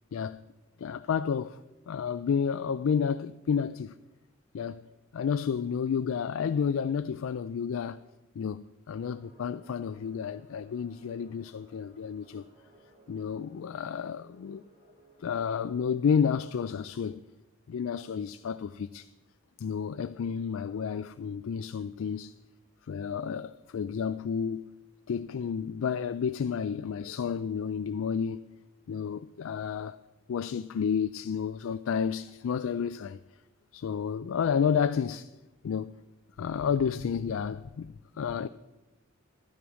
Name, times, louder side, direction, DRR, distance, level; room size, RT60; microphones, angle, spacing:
voice 1, 0.1-0.4 0.8-1.6 1.9-3.9 4.5-4.8 5.1-8.0 8.4-12.4 13.1-14.6 15.2-17.2 17.7-19.1 19.6-22.3 22.8-24.7 25.1-28.4 28.9-30.0 30.3-33.2 33.7-35.3 35.6-36.0 36.4-38.5, left 7 dB, 70° left, 0.4 m, -31 dB
sound 1, 9.0-15.8, right 2 dB, 35° right, 3.6 m, -61 dB
12.5 x 10.0 x 6.2 m
head